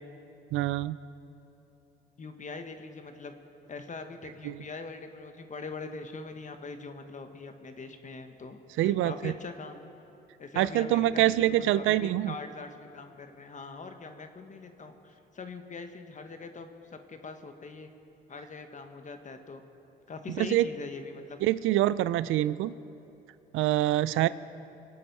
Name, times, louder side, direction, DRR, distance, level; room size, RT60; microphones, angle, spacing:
voice 1, 0.5-1.0 4.4-4.6 8.8-9.3 10.6-12.3 20.4-20.7 21.4-22.7 23.5-24.3, right 14 dB, 85° right, 17 dB, 0.4 m, -25 dB
voice 2, 2.2-3.4 3.7-9.9 10.4-17.9 18.3-19.6 20.1-21.4 24.1-24.3, left 4 dB, 40° left, 7 dB, 1.3 m, -42 dB
24.5 x 8.5 x 5.5 m, 3.0 s
cardioid pair, 90°, 20 cm